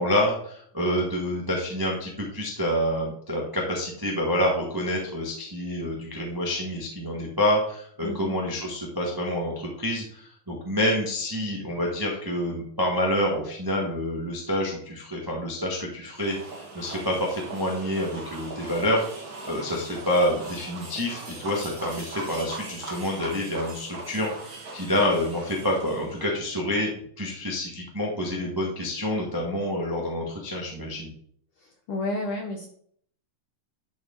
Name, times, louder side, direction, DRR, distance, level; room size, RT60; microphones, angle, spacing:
voice 1, 0.0-16.4 16.7-19.0 19.4-31.1, left 1 dB, 20° right, -2 dB, 0.5 m, -27 dB
voice 2, 8.0-8.4 31.6-32.7, left 2 dB, 65° left, 2 dB, 1.4 m, -31 dB
sound 1, 16.1-26.2, right 2 dB, 40° right, 1.6 m, -40 dB
12.0 x 4.7 x 3.9 m, 0.62 s
omnidirectional pair, 3.6 m